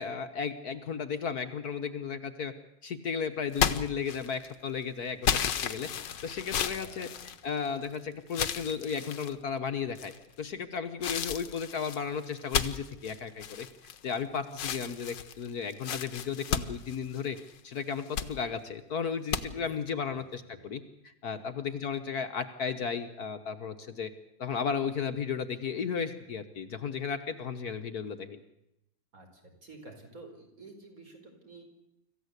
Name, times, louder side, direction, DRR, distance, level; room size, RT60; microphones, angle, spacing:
voice 1, 0.0-2.5 2.8-5.9 6.2-7.1 7.4-13.7 14.0-17.4 17.6-24.1 24.4-28.4, left 6 dB, 60° left, 8 dB, 1.6 m, -34 dB
sound 1, 3.5-4.5 5.2-7.9 8.3-9.3 9.9-10.4 11.0-14.2 14.5-17.5 17.9-18.3 19.3-19.4, left 8 dB, 75° left, 1.7 m, -33 dB
voice 2, 6.4-7.4 19.4-19.6 20.0-20.7 21.3-21.5 29.1-31.6, right 2 dB, 45° right, 3 dB, 5.1 m, -51 dB
26.0 x 15.0 x 8.2 m, 0.87 s
omnidirectional pair, 2.0 m